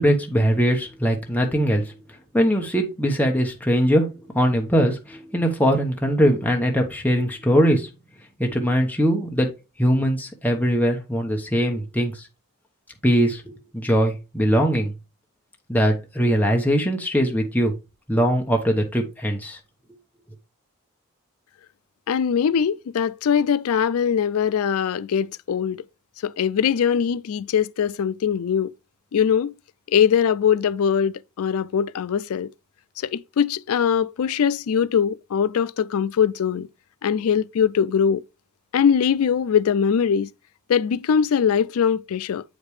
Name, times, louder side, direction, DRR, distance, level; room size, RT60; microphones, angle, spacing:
voice 1, 0.0-1.9 2.3-4.1 4.3-7.9 8.4-9.5 9.8-12.3 13.0-13.4 13.7-14.9 15.7-17.7 18.1-19.6, equal, 10° left, 1.0 m, -21 dB
voice 2, 22.1-25.8 26.2-28.7 29.1-29.5 29.9-32.5 33.0-36.7 37.0-38.2 38.7-40.3 40.7-42.4, left 7 dB, 75° left, 0.4 m, -21 dB
8.1 x 5.2 x 3.2 m
head